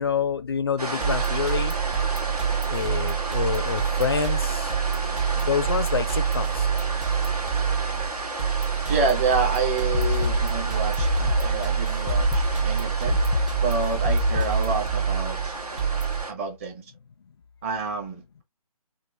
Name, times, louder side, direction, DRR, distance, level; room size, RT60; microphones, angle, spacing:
voice 1, 0.0-1.7 2.7-4.7 5.3-6.7, left 6 dB, 40° left, 0.4 m, -27 dB
sound 1, 0.8-16.3, right 2 dB, 85° right, 1.3 m, -33 dB
sound 2, 1.0-16.2, right 7 dB, 55° right, 0.9 m, -27 dB
voice 2, 8.9-13.2 13.6-15.5 16.3-16.8 17.6-18.4, right 3 dB, 20° right, 1.0 m, -28 dB
sound 3, 9.9-14.9, left 2 dB, 5° left, 0.7 m, -26 dB
3.1 x 2.4 x 3.1 m
figure-of-eight pair, 145°, 20 cm